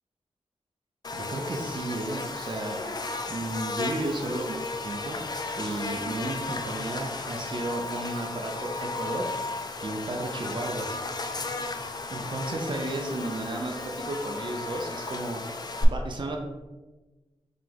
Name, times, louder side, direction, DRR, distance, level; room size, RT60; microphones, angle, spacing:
Buzz, 1.0-15.8, left 3 dB, 40° left, 0.4 m, -34 dB
voice 1, 1.1-2.8 3.3-5.2 5.6-9.3 9.8-10.9 12.1-16.4, right 2 dB, 45° right, 2 dB, 0.5 m, -33 dB
3.2 x 2.9 x 3.9 m, 1.2 s
wide cardioid pair, 90°, 11 cm